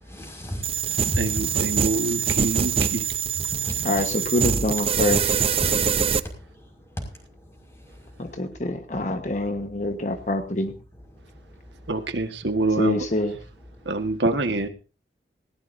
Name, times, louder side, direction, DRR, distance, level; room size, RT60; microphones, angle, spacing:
voice 1, 0.1-1.7 3.5-4.0 5.1-5.2, equal, 15° left, 5.5 m, -33 dB
sound 1, 0.6-6.2, right 7 dB, 35° right, 0.6 m, -24 dB
voice 2, 1.2-3.0 11.9-13.0 13.8-14.7, right 2 dB, 85° right, 1.6 m, -26 dB
voice 3, 3.8-5.4 8.2-10.7 12.8-13.3, left 1 dB, 45° left, 1.3 m, -26 dB
19.5 x 18.0 x 2.7 m
head